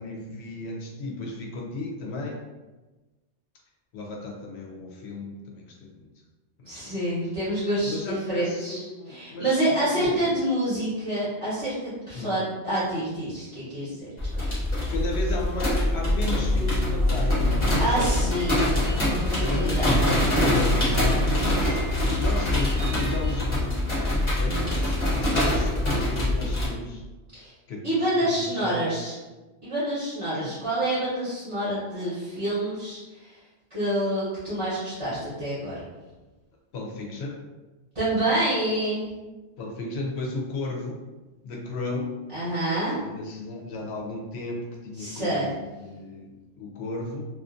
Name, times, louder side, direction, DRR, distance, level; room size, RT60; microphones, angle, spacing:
voice 1, 0.0-2.4 3.9-6.1 6.6-7.0 7.8-10.2 12.1-12.3 14.9-18.4 19.4-21.8 22.1-23.8 24.3-27.0 27.7-28.9 30.3-30.6 36.7-37.4 39.6-41.0 41.4-42.1 42.9-46.3 46.6-47.2, left 2 dB, 65° left, -1 dB, 0.8 m, -35 dB
voice 2, 6.7-14.1 17.8-18.6 19.0-19.9 24.4-24.7 27.3-27.5 27.8-29.2 29.6-33.3 33.7-35.7 37.9-39.1 42.3-43.0 45.0-45.5, right 1 dB, 30° right, -11 dB, 0.8 m, -27 dB
sound 1, 14.2-26.7, left 1 dB, 30° left, 0.7 m, -24 dB
sound 2, 16.1-23.5, right 2 dB, 60° right, 0.7 m, -35 dB
2.4 x 2.4 x 2.5 m, 1.2 s
omnidirectional pair, 1.3 m